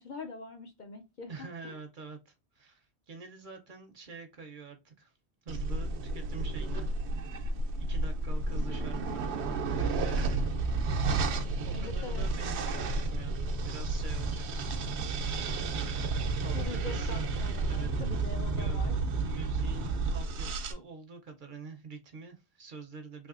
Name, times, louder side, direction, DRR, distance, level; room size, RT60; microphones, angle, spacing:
voice 1, 0.0-1.8 11.7-13.0 16.5-19.0, left 3 dB, 55° left, 0.6 m, -44 dB
voice 2, 1.3-5.1 5.4-7.5 7.8-10.4 11.6-14.4 16.4-17.3 17.7-17.9 18.3-18.9 19.2-23.3, right 4 dB, 55° right, 0.7 m, -46 dB
sound 1, 5.5-20.7, right 3 dB, 80° right, 0.9 m, -31 dB
3.3 x 3.1 x 2.4 m
omnidirectional pair, 1.1 m